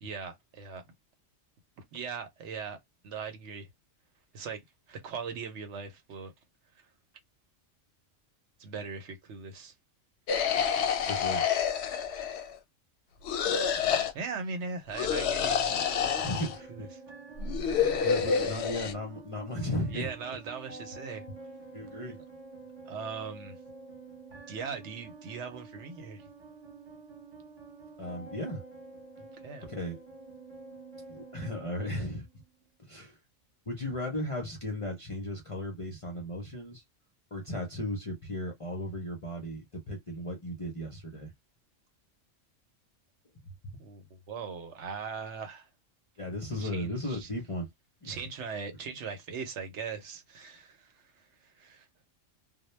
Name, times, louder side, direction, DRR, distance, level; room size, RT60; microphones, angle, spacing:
voice 1, 0.0-0.8 1.9-2.8 3.0-3.7 4.3-4.6 4.9-6.3 8.6-9.7 14.1-15.8 16.2-16.4 16.7-16.9 19.9-21.3 22.9-23.6 24.5-26.2 29.4-29.7 43.8-45.7 46.6-47.3 48.0-51.9, right 5 dB, 65° right, 0.9 m, -39 dB
sound 1, 10.3-12.6 13.2-14.1 14.9-16.6 17.4-18.9, left 7 dB, 65° left, 0.8 m, -28 dB
voice 2, 11.1-11.5 16.2-16.9 18.0-20.1 21.7-22.2 28.0-28.6 29.6-30.0 31.1-32.3 32.9-33.2 33.7-36.8 37.3-41.3 43.4-43.8 46.2-47.7 48.0-48.2, left 1 dB, 40° left, 0.5 m, -36 dB
sound 2, 15.6-32.6, right 3 dB, 35° right, 0.9 m, -49 dB
2.2 x 2.1 x 3.0 m
omnidirectional pair, 1.3 m